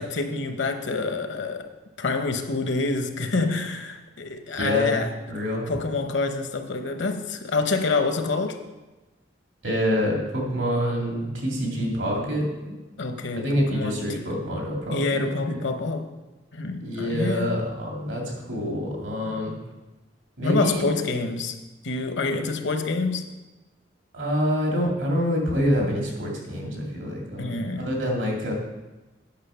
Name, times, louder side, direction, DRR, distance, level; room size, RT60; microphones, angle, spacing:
voice 1, 0.0-1.7 2.0-5.1 5.7-8.6 13.0-14.2 14.9-16.1 16.5-17.5 19.3-19.6 20.4-21.6 21.8-23.2 27.4-27.9, left 3 dB, 70° left, 7 dB, 0.9 m, -27 dB
voice 2, 4.5-4.9 5.3-5.7 9.6-12.7 13.3-15.6 16.8-19.5 20.4-20.9 24.1-28.5, equal, 85° right, -1 dB, 2.5 m, -26 dB
8.8 x 6.0 x 5.6 m, 1.1 s
head